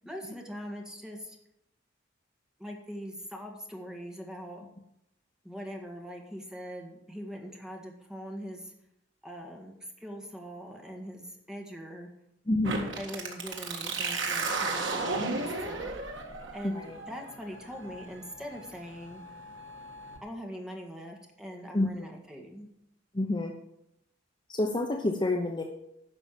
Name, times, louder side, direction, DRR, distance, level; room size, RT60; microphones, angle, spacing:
voice 1, 0.0-1.4 2.6-4.6 5.4-8.7 9.2-12.1 12.8-16.0 16.5-19.2 20.2-22.7, equal, 5° right, 1 dB, 1.9 m, -42 dB
voice 2, 12.5-12.8 16.6-17.0 21.7-22.0 23.1-23.5 24.5-25.6, left 2 dB, 25° left, 2 dB, 0.8 m, -28 dB
sound 1, 12.6-20.2, right 3 dB, 75° right, 1.8 m, -35 dB
11.0 x 6.0 x 7.4 m, 0.79 s
head